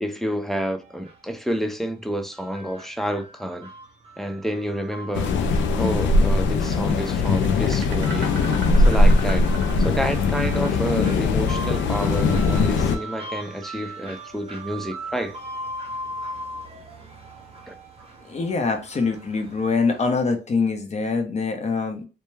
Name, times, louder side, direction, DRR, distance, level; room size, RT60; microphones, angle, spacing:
voice 1, 0.0-3.7 4.2-5.4 5.8-8.3 8.8-9.5 9.8-15.4 17.7-17.8, equal, ahead, 0.3 m, -29 dB
sound 1, 0.8-20.1, right 1 dB, 30° right, 0.8 m, -40 dB
sound 2, 5.1-13.0, left 3 dB, 70° left, 0.4 m, -20 dB
sound 3, 6.6-13.8, right 2 dB, 60° right, 0.7 m, -40 dB
voice 2, 18.2-22.0, left 4 dB, 35° left, 0.7 m, -24 dB
2.2 x 2.2 x 3.0 m
cardioid pair, 90°, 20 cm